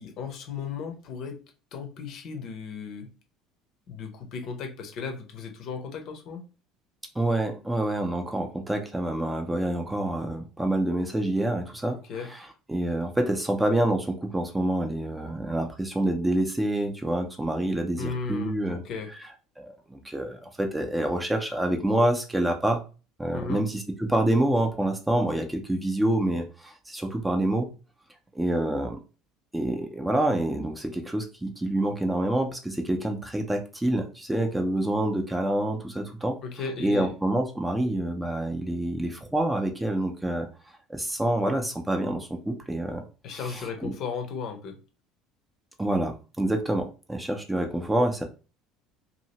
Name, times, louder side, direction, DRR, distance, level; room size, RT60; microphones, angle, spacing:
voice 1, 0.0-1.4 1.7-3.1 3.9-6.4 11.9-12.3 18.0-19.2 23.3-23.6 36.4-37.1 43.2-44.8, left 5 dB, 50° left, 5 dB, 0.7 m, -35 dB
voice 2, 7.2-12.4 12.7-18.8 19.6-22.8 23.2-27.7 28.3-29.0 29.5-36.4 36.8-40.5 40.9-43.0 43.3-43.9 45.8-48.2, right 1 dB, 10° right, 4 dB, 0.6 m, -27 dB
2.7 x 2.7 x 2.8 m, 0.34 s
figure-of-eight pair, 65°, 0 cm